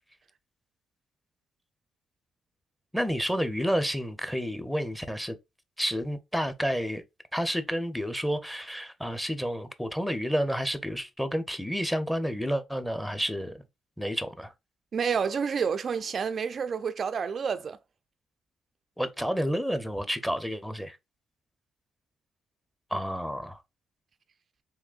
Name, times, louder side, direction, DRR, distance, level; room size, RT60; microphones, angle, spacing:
voice 1, 2.9-5.4 5.8-7.0 7.3-13.6 14.0-14.5 19.0-21.0 22.9-23.6, equal, ahead, 0.6 m, -30 dB
voice 2, 14.9-17.8, right 6 dB, 50° right, 0.3 m, -29 dB
3.6 x 2.9 x 2.4 m
cardioid pair, 90°, 0 cm